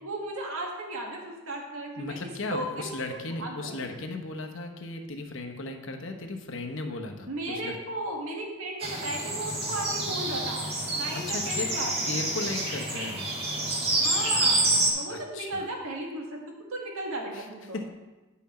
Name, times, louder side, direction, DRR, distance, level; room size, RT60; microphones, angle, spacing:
voice 1, 0.0-2.2 2.5-2.9 3.3-3.9 7.3-10.7 10.9-12.2 14.0-14.6 14.9-16.4 16.7-17.8, right 1 dB, 80° right, 0 dB, 1.7 m, -35 dB
voice 2, 2.0-7.8 11.3-11.7 12.1-13.3 15.1-15.7 17.3-17.5 17.7-17.9, left 3 dB, 60° left, 4 dB, 0.9 m, -36 dB
sound 1, 8.8-14.9, right 2 dB, 25° right, 1.7 m, -28 dB
9.9 x 5.8 x 4.3 m, 1.2 s
head